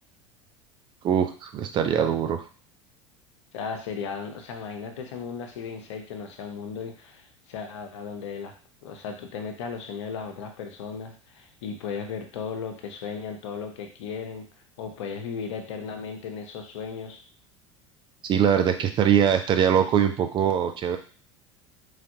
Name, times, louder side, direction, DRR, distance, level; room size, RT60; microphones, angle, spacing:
voice 1, 1.0-2.4 18.2-21.0, right 8 dB, 30° right, 7 dB, 0.4 m, -22 dB
voice 2, 3.5-8.5 8.8-14.5 14.8-17.2, left 6 dB, 65° left, 5 dB, 0.6 m, -36 dB
3.2 x 2.5 x 2.6 m, 0.39 s
figure-of-eight pair, 75°, 16 cm